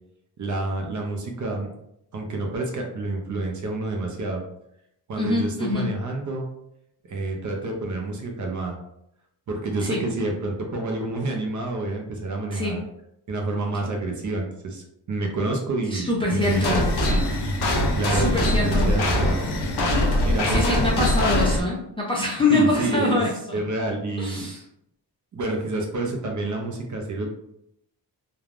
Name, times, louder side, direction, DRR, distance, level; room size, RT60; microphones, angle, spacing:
voice 1, 0.4-1.7 2.1-4.4 5.1-6.5 7.1-8.8 9.5-12.8 13.3-16.8 17.1-17.2 18.0-19.4 20.3-20.6 22.5-23.2 23.5-24.5 25.3-27.3, right 2 dB, 45° right, 2 dB, 0.5 m, -28 dB
voice 2, 5.2-5.9 9.8-10.0 12.5-12.8 15.9-16.8 18.1-18.9 20.5-23.6 24.2-24.6, left 2 dB, 15° left, -3 dB, 0.3 m, -24 dB
sound 1, 16.4-21.6, left 1 dB, 65° left, 0.6 m, -22 dB
3.3 x 2.2 x 2.4 m, 0.77 s
wide cardioid pair, 175°, 43 cm